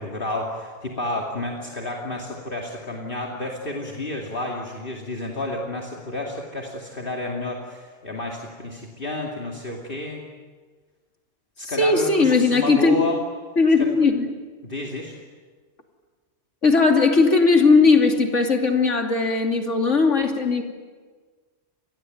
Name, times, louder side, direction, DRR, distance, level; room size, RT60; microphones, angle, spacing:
voice 1, 0.0-10.2 11.6-13.2 13.8-13.9 14.6-15.2, left 1 dB, 50° left, 0 dB, 2.8 m, -31 dB
voice 2, 11.8-13.0 13.6-14.3 16.6-20.6, left 4 dB, 85° left, 4 dB, 3.1 m, -18 dB
28.5 x 21.5 x 9.3 m, 1.4 s
omnidirectional pair, 1.2 m